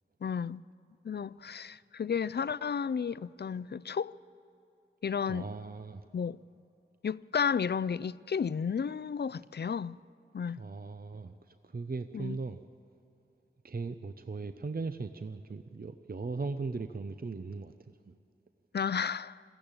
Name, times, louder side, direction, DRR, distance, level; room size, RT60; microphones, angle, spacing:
voice 1, 0.2-0.6 1.0-4.2 5.0-5.5 6.1-6.4 7.0-10.0 10.3-10.6 12.1-12.4 18.7-19.4, left 6 dB, 55° left, 0.4 m, -32 dB
voice 2, 5.3-6.0 10.6-12.6 13.6-18.2, right 4 dB, 45° right, 0.6 m, -38 dB
20.5 x 14.5 x 8.8 m
wide cardioid pair, 45°, 21 cm